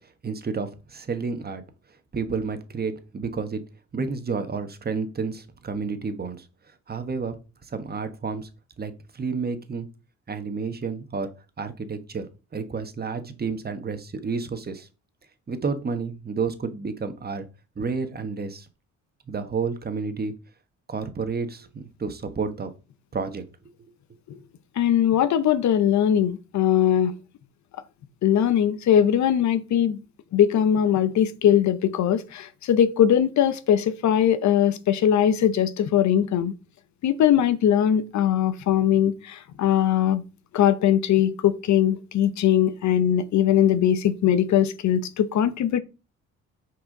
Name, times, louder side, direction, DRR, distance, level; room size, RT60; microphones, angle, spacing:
voice 1, 0.2-1.6 2.1-3.6 3.9-6.4 6.9-8.5 8.8-9.9 10.3-11.3 11.6-12.3 12.5-14.9 15.5-17.4 17.8-18.7 19.3-20.3 20.9-22.7 23.1-23.4, right 5 dB, 30° right, 1.4 m, -30 dB
voice 2, 24.8-27.1 28.2-30.0 30.3-36.5 37.0-40.2 40.5-45.8, left 10 dB, 70° left, 0.8 m, -21 dB
6.2 x 4.8 x 5.3 m
cardioid pair, 90°, 30 cm